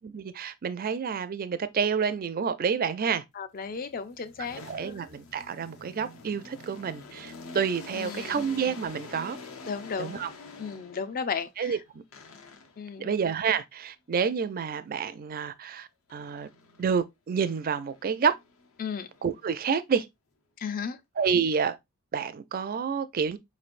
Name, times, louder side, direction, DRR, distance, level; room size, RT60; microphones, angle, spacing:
voice 1, 0.0-3.2 4.7-9.4 10.0-10.3 11.6-12.0 13.0-16.5 16.8-18.4 19.2-20.1 21.2-21.8 22.1-23.4, right 6 dB, 40° right, 0.4 m, -29 dB
voice 2, 3.4-5.0 7.9-8.4 9.7-10.3 10.6-11.8 12.8-13.1 18.8-19.1 20.6-21.0, left 6 dB, 40° left, 0.4 m, -35 dB
sound 1, 3.6-11.2 12.1-12.9 16.1-16.9 17.4-19.7, left 3 dB, 65° left, 0.8 m, -47 dB
5.0 x 3.2 x 2.5 m
head